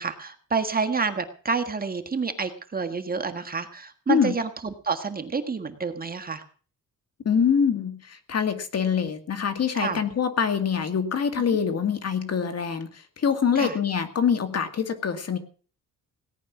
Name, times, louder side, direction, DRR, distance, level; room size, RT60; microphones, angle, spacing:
voice 1, 0.0-6.4 9.7-10.0 13.5-13.8, right 5 dB, 25° right, 7 dB, 1.6 m, -29 dB
voice 2, 7.2-15.4, left 7 dB, 50° left, 8 dB, 2.1 m, -25 dB
18.0 x 11.0 x 6.0 m, 0.41 s
cardioid pair, 140°, 33 cm